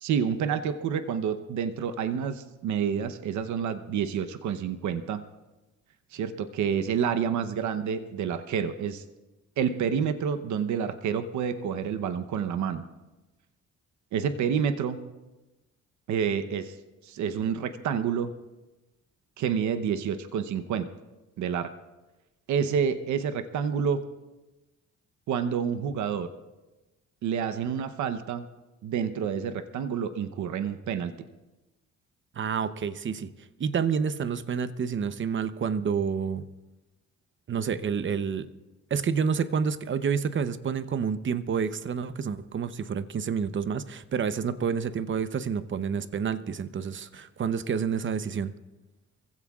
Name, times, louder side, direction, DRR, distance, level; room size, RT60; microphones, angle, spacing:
voice 1, 0.0-5.2 6.1-9.0 9.6-12.9 14.1-15.0 16.1-16.7 17.0-18.3 19.4-20.9 21.4-21.7 22.5-24.0 25.3-26.3 27.2-28.4 28.8-31.1, right 7 dB, 75° right, 9 dB, 0.9 m, -28 dB
voice 2, 32.4-33.3 33.6-36.5 37.5-38.5 38.9-48.5, right 6 dB, 40° right, 13 dB, 0.8 m, -29 dB
25.0 x 16.0 x 2.4 m, 1.1 s
cardioid pair, 90°, 30 cm